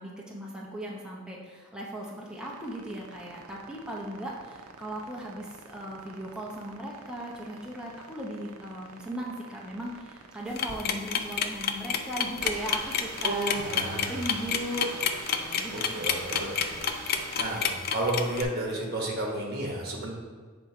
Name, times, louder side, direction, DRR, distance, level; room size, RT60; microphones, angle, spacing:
voice 1, 0.0-16.7, right 1 dB, 5° right, -4 dB, 0.7 m, -38 dB
sound 1, 2.1-18.0, right 5 dB, 90° right, 0.5 m, -45 dB
sound 2, 10.6-18.4, left 7 dB, 45° left, 0.4 m, -28 dB
voice 2, 13.2-14.2 15.7-16.8 17.4-20.1, right 1 dB, 45° right, -1 dB, 1.3 m, -32 dB
6.9 x 3.6 x 4.4 m, 1.5 s
head